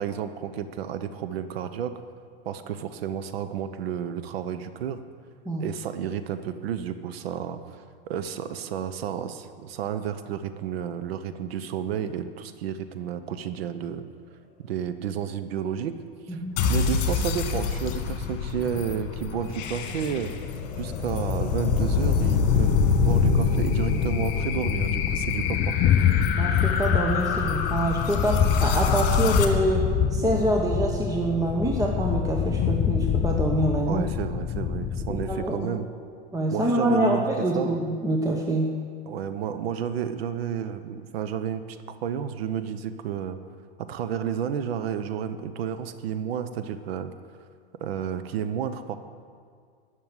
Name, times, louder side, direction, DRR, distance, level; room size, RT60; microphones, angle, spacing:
voice 1, 0.0-1.9 2.4-5.0 5.6-7.6 8.1-14.0 14.6-16.0 16.3-16.4 16.7-20.3 20.8-25.9 33.9-35.9 36.5-37.8 39.1-43.4 43.8-47.1 47.8-49.0, right 8 dB, 80° right, 10 dB, 1.0 m, -31 dB
sound 1, 16.6-29.5, left 6 dB, 50° left, 1.9 m, -26 dB
Thunder, 23.4-35.6, left 8 dB, 30° left, 0.5 m, -26 dB
voice 2, 26.4-29.8 30.1-34.1 35.1-35.7 36.3-38.7, right 1 dB, 10° right, 1 dB, 1.1 m, -26 dB
13.0 x 6.6 x 9.7 m, 2.1 s
supercardioid pair, 125°, 30 cm